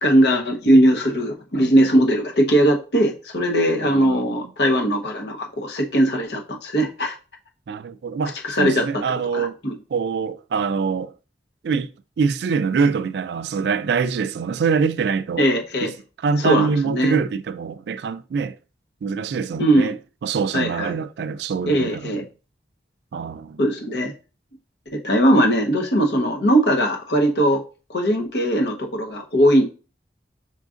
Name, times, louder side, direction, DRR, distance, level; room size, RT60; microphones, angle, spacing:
voice 1, 0.0-7.1 8.4-8.9 9.3-9.8 15.4-15.9 16.4-17.2 19.6-19.9 20.5-20.9 21.7-22.2 23.6-24.1 24.9-27.6 27.9-29.6, right 1 dB, 80° left, 0.9 m, -19 dB
voice 2, 3.8-4.5 7.7-9.6 9.9-11.1 11.6-11.9 12.2-15.5 15.8-15.9 16.2-18.6 19.0-20.0 20.2-22.2 23.1-23.6, right 5 dB, 75° right, 0.3 m, -24 dB
5.6 x 3.7 x 2.5 m
head